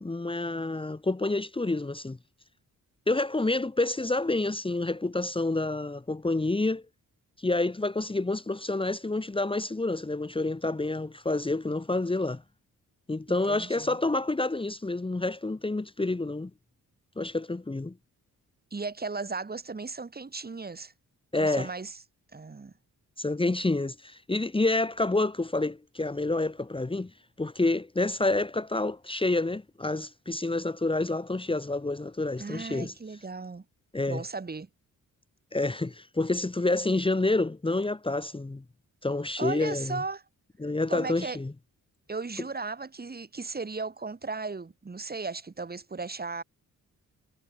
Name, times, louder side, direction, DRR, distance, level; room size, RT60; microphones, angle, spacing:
voice 1, 0.0-2.2 3.1-6.8 7.4-12.4 13.1-16.5 17.2-17.9 21.3-21.7 23.2-27.1 27.4-32.9 33.9-34.2 35.5-38.6 39.0-40.0 40.6-41.5, left 2 dB, 15° left, 1.6 m, -28 dB
voice 2, 13.3-14.0 18.7-20.9 21.4-22.0 22.3-22.7 32.4-33.6 34.1-34.7 39.4-40.2 40.9-41.4 42.1-46.4, right 4 dB, 30° right, 2.7 m, -36 dB
cardioid pair, 110°, 33 cm